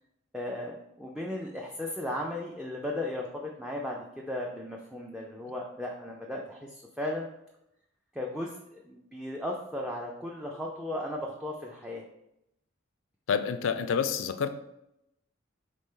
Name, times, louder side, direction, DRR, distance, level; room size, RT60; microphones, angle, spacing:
voice 1, 0.3-7.3 8.1-12.0, left 1 dB, 5° right, -2 dB, 0.3 m, -36 dB
voice 2, 13.3-14.5, left 6 dB, 80° left, 10 dB, 0.4 m, -28 dB
4.1 x 3.2 x 3.6 m, 0.85 s
head